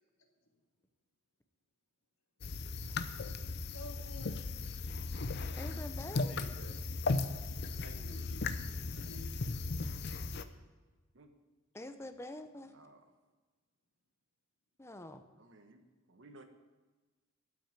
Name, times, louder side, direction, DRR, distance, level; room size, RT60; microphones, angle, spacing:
sound 1, 2.4-10.4, left 3 dB, 55° left, 0.6 m, -37 dB
voice 1, 3.7-4.5 6.1-6.7 7.8-8.5 8.9-9.6, left 1 dB, 80° left, 3 dB, 1.8 m, -51 dB
voice 2, 5.6-6.3 11.7-12.7 14.8-15.2, left 1 dB, 15° left, 8 dB, 0.7 m, -46 dB
voice 3, 12.7-13.1 15.4-16.4, right 2 dB, 65° right, 6 dB, 1.3 m, -58 dB
13.0 x 6.3 x 8.9 m, 1.3 s
head